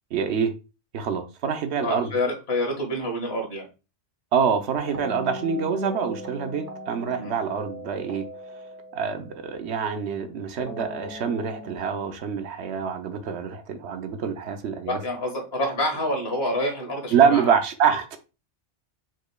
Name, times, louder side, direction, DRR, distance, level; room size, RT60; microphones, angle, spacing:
voice 1, 0.1-0.5 0.9-2.1 4.3-8.3 8.9-15.0 17.1-18.2, right 6 dB, 70° right, 1.0 m, -25 dB
voice 2, 1.8-3.7 7.2-7.3 14.9-17.5, left 1 dB, 55° left, 1.8 m, -27 dB
sound 1, 4.8-9.9 10.6-11.8, equal, 35° right, 0.9 m, -39 dB
5.0 x 4.3 x 2.3 m
omnidirectional pair, 1.2 m